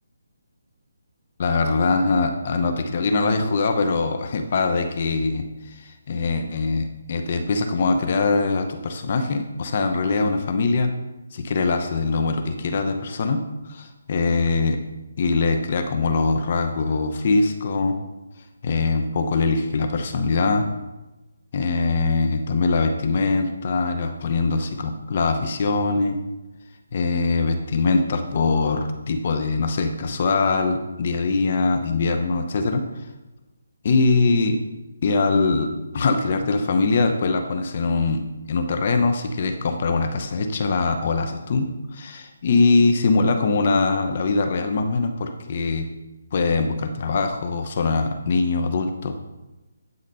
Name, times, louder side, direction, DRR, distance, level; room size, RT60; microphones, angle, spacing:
voice 1, 1.4-10.9 11.3-14.8 15.2-18.0 18.6-20.6 21.5-26.2 26.9-33.1 33.8-34.6 35.0-38.2 38.5-45.9 46.3-49.2, left 3 dB, 45° left, 6 dB, 0.8 m, -22 dB
11.0 x 4.0 x 5.5 m, 1.0 s
hypercardioid pair, 165°, 0 cm